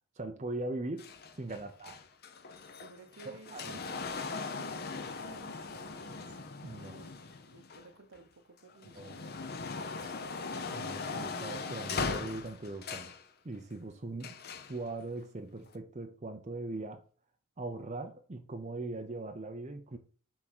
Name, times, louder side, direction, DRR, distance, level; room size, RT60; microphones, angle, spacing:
voice 1, 0.2-1.1 1.3-2.0 3.3-3.8 6.6-7.0 9.0-9.2 10.7-13.1 13.4-14.4 14.7-17.0 17.6-20.0, right 2 dB, 30° right, 0.6 m, -40 dB
sound 1, 1.0-8.2 8.7-13.2 14.2-14.8 15.7-15.8, left 4 dB, 45° left, 0.7 m, -40 dB
voice 2, 2.8-6.4 6.8-9.3 9.7-10.4, right 4 dB, 65° right, 1.0 m, -55 dB
6.2 x 3.7 x 6.1 m
head